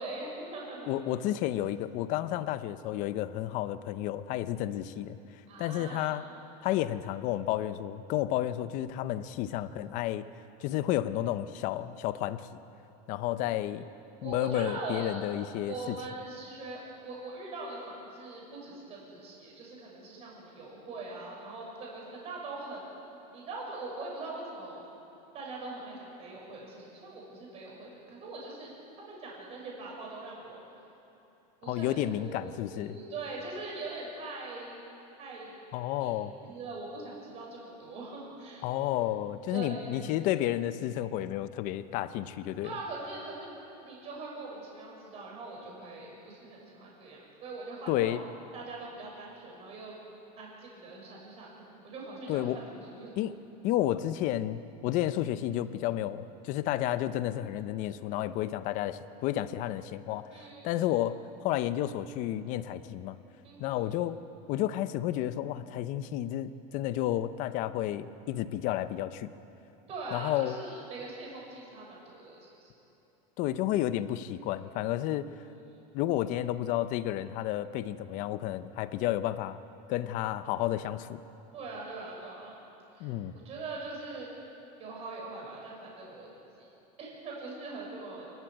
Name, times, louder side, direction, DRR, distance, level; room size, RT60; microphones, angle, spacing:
voice 1, 0.0-0.9 5.5-6.2 13.4-13.7 14.2-15.2 15.6-22.8 23.3-24.8 25.3-28.7 29.0-30.6 31.6-32.0 32.2-34.8 35.2-35.5 36.0-36.1 36.4-38.7 39.5-40.0 42.6-43.5 43.8-48.3 48.5-49.9 50.4-53.1 60.3-60.9 63.4-63.9 69.9-72.7 75.2-75.9 81.5-82.5 82.9-83.1 83.4-84.3 84.8-86.3 86.6-86.7 87.0-88.2, right 3 dB, 30° right, -3 dB, 6.7 m, -42 dB
voice 2, 0.9-5.2 5.6-6.3 6.6-10.2 10.6-12.5 13.1-13.9 14.2-16.0 31.7-33.0 35.7-36.3 38.6-42.7 47.9-48.2 52.3-52.6 53.2-53.3 53.6-60.3 60.6-63.2 63.6-64.2 64.5-69.3 70.1-70.6 73.4-75.3 75.9-79.6 79.9-81.2 83.0-83.3, left 13 dB, 35° left, 13 dB, 0.7 m, -31 dB
27.5 x 13.5 x 9.0 m, 2.9 s
supercardioid pair, 165°, 21 cm